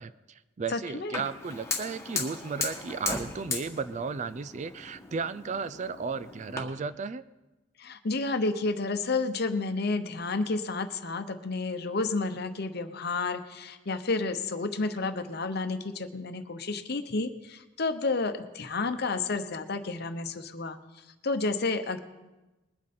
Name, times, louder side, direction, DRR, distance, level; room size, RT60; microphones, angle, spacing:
voice 1, 0.0-7.2, right 5 dB, 35° right, 15 dB, 0.4 m, -34 dB
voice 2, 0.7-1.2 7.8-20.8 21.2-22.0, left 3 dB, 55° left, 9 dB, 0.9 m, -31 dB
Fire, 1.1-6.6, left 4 dB, 15° left, 1.7 m, -37 dB
21.0 x 8.6 x 4.3 m, 1.1 s
head